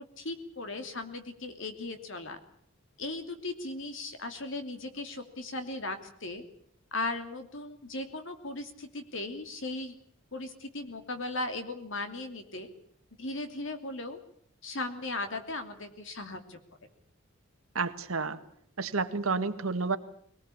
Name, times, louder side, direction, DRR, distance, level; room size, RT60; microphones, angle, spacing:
voice 1, 0.2-2.4 3.0-6.4 6.9-9.9 10.3-12.7 13.2-14.2 14.6-16.6, left 2 dB, 65° left, 7 dB, 2.9 m, -37 dB
voice 2, 17.7-18.4 18.8-20.0, right 4 dB, 90° right, 9 dB, 1.6 m, -30 dB
22.5 x 19.0 x 8.6 m, 0.64 s
head